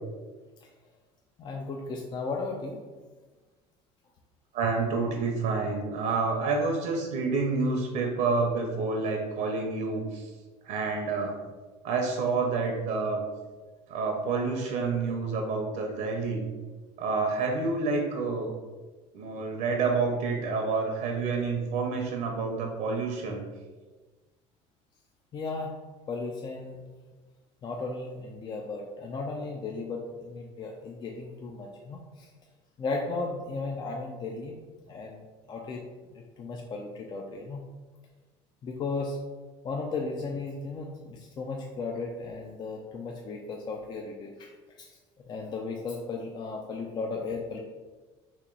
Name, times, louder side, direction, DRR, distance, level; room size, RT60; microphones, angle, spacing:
voice 1, 1.4-2.8 25.3-25.7 26.1-26.8 27.6-32.3 32.8-34.6 34.9-35.2 35.5-35.8 36.1-37.6 38.6-39.2 39.6-44.5 44.8-45.0 45.3-47.6, left 3 dB, 30° left, 1 dB, 0.4 m, -35 dB
voice 2, 4.5-10.3 10.6-11.4 11.8-13.2 13.9-16.5 17.0-18.5 19.1-23.4, right 4 dB, 65° right, 2 dB, 0.7 m, -28 dB
2.9 x 2.9 x 3.8 m, 1.3 s
supercardioid pair, 110°, 14 cm